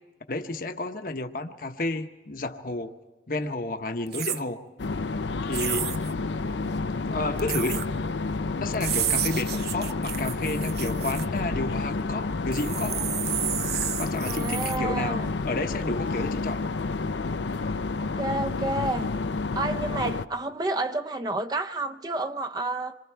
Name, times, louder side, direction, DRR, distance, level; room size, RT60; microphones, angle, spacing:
voice 1, 0.3-2.9 3.3-4.6 5.5-5.9 7.1-7.9 8.6-13.0 14.0-16.6, left 2 dB, 50° left, 1.0 m, -31 dB
sound 1, 4.1-4.4 5.5-6.1 7.4-7.9 8.7-11.3 12.5-14.8, right 11 dB, 65° right, 0.8 m, -31 dB
sound 2, 4.8-20.3, left 3 dB, 85° left, 0.6 m, -30 dB
voice 2, 14.2-15.3 18.0-19.1 19.5-22.9, right 2 dB, 20° right, 0.6 m, -30 dB
27.0 x 23.0 x 4.6 m
head